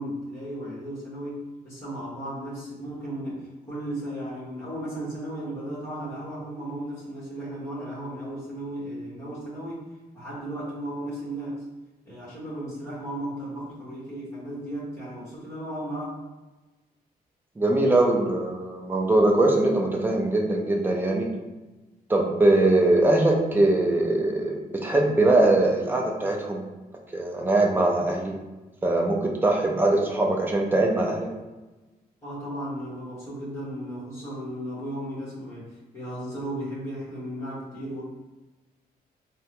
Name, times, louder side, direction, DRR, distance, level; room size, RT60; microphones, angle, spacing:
voice 1, 0.0-9.8 10.1-11.6 12.0-16.2 32.2-35.7 35.9-38.0, right 1 dB, 15° left, -9 dB, 1.3 m, -35 dB
voice 2, 17.6-21.3 22.1-26.6 27.1-28.4 28.8-31.3, right 2 dB, 15° right, 0 dB, 0.4 m, -22 dB
3.7 x 2.2 x 2.9 m, 1.1 s
wide cardioid pair, 175°, 16 cm